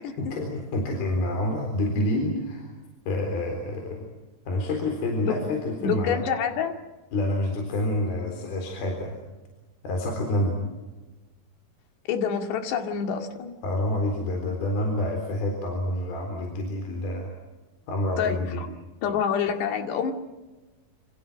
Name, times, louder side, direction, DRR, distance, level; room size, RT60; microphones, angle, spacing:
voice 1, 0.2-2.7 3.1-4.1 4.5-6.2 7.1-9.1 9.8-10.6 13.6-17.3 17.9-18.6, left 1 dB, 65° left, 2 dB, 5.8 m, -28 dB
voice 2, 5.8-6.8 12.1-13.6 18.2-18.7 19.0-20.1, left 7 dB, 80° left, 5 dB, 4.3 m, -27 dB
28.0 x 26.5 x 6.3 m, 1.1 s
omnidirectional pair, 4.8 m